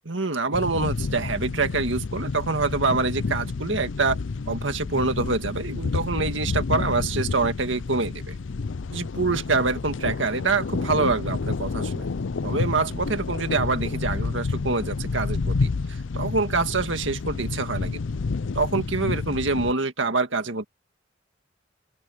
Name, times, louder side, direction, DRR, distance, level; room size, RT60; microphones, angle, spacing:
voice 1, 0.1-4.2 4.5-8.4 8.9-12.1 12.4-18.0 18.5-20.6, right 3 dB, 80° right, 1.9 m, -26 dB
sound 1, 0.5-19.7, left 4 dB, 85° left, 0.6 m, -29 dB
open air
head